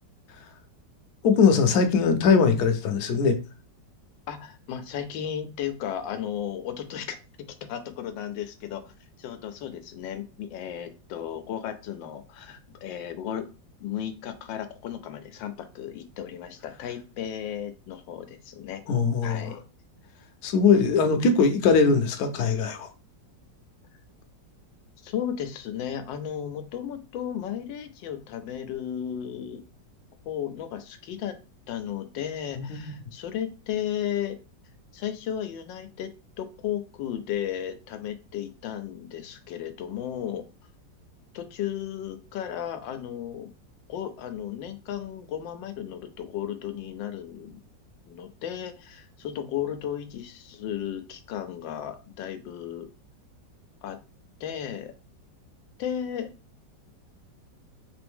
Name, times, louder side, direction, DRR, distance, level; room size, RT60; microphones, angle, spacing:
voice 1, 1.2-3.4 18.9-19.5 20.4-22.9 32.5-33.0, left 5 dB, 70° left, 6 dB, 1.1 m, -21 dB
voice 2, 4.3-7.2 7.6-8.9 9.2-13.5 13.8-18.8 19.2-19.6 25.0-29.6 30.3-31.4 31.7-34.4 34.9-36.1 36.4-40.4 41.3-43.5 43.9-47.6 48.1-52.9 53.8-54.0 54.4-54.9 55.8-56.3, left 9 dB, 90° left, 9 dB, 1.4 m, -34 dB
3.4 x 3.4 x 3.5 m, 0.32 s
omnidirectional pair, 2.0 m